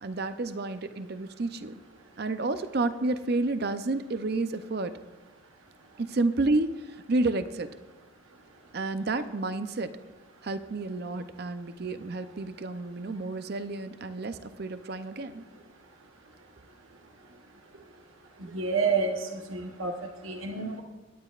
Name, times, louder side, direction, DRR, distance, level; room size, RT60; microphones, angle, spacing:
voice 1, 0.0-1.7 2.2-5.0 6.0-7.7 8.7-10.0 10.4-15.4 18.4-18.6, right 2 dB, 50° right, 11 dB, 0.6 m, -30 dB
voice 2, 18.5-19.9 20.2-20.8, right 4 dB, 75° right, 3 dB, 1.0 m, -29 dB
21.0 x 9.7 x 2.4 m, 1.3 s
head